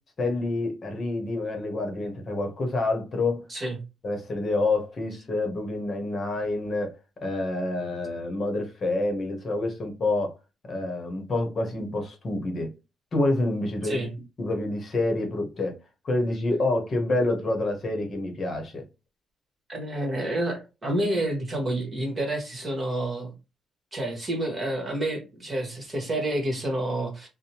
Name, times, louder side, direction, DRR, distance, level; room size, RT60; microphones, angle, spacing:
voice 1, 0.2-3.4 4.0-6.9 7.2-10.3 10.7-12.7 13.1-14.1 14.4-15.7 16.0-18.8, left 2 dB, 45° left, 0.9 m, -27 dB
voice 2, 19.7-23.3 23.9-27.3, right 1 dB, 30° right, 1.3 m, -29 dB
2.7 x 2.1 x 2.8 m
cardioid pair, 90°, 0 cm